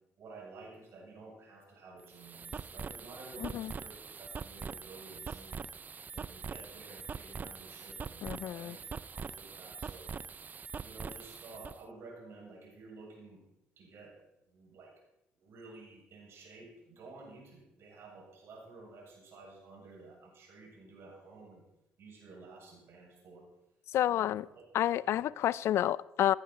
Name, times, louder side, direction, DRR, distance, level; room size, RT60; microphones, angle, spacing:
voice 1, 0.2-5.7 6.1-10.4 10.8-13.4 13.8-14.2 14.5-14.9 15.4-21.6 22.0-23.5 24.1-24.6 25.0-25.2, right 3 dB, 60° right, -1 dB, 7.7 m, -52 dB
sound 1, 2.0-11.8, right 5 dB, 35° right, 0.5 m, -43 dB
voice 2, 3.4-3.7 8.2-8.7 23.9-24.5 24.7-26.3, left 12 dB, 65° left, 21 dB, 0.4 m, -29 dB
17.0 x 13.0 x 4.5 m, 0.86 s
supercardioid pair, 65°, 5 cm